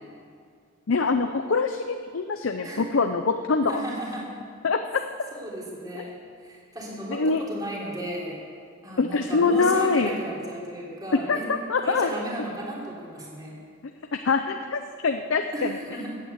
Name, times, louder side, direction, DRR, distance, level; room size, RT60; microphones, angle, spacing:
voice 1, 0.9-3.8 4.6-5.0 5.9-6.0 7.1-7.4 9.0-10.1 11.1-12.1 14.1-15.7, left 4 dB, 65° left, 7 dB, 0.6 m, -24 dB
voice 2, 3.7-4.2 5.3-6.1 6.4-8.4 8.8-11.5 11.8-13.6 15.5-16.1, right 1 dB, 20° right, -4 dB, 3.3 m, -34 dB
15.0 x 9.2 x 8.1 m, 2.2 s
head